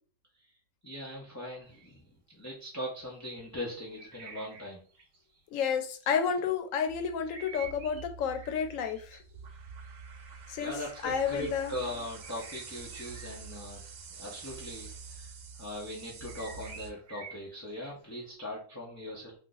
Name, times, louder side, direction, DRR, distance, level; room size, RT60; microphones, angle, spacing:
voice 1, 0.8-2.0 2.3-4.8 10.6-13.8 14.2-14.9 15.1-15.3 15.6-19.3, left 1 dB, 20° left, -3 dB, 0.4 m, -40 dB
sound 1, 1.6-2.0 3.1-3.2 3.7-5.2 6.0-6.3 7.3-8.1 8.3-9.5 10.2-10.5 11.9-12.6 12.9-13.3 13.7-13.9 15.9-18.3, right 5 dB, 60° right, 1.1 m, -49 dB
voice 2, 5.5-9.2 10.5-11.7, left 7 dB, 90° left, 5 dB, 1.0 m, -31 dB
sound 2, 6.9-16.9, right 5 dB, 85° right, 0.4 m, -47 dB
2.5 x 2.4 x 3.8 m, 0.40 s
omnidirectional pair, 1.3 m